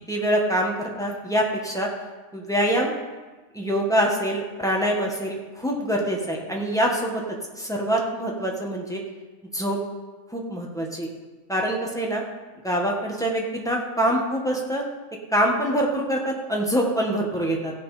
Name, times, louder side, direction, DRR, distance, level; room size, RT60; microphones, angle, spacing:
voice 1, 0.1-1.9 2.3-2.9 3.5-7.2 7.6-9.0 9.5-9.8 10.3-11.1 11.5-12.2 12.6-14.9 15.3-17.7, right 1 dB, ahead, -1 dB, 1.5 m, -25 dB
15.5 x 7.1 x 5.0 m, 1.3 s
omnidirectional pair, 1.5 m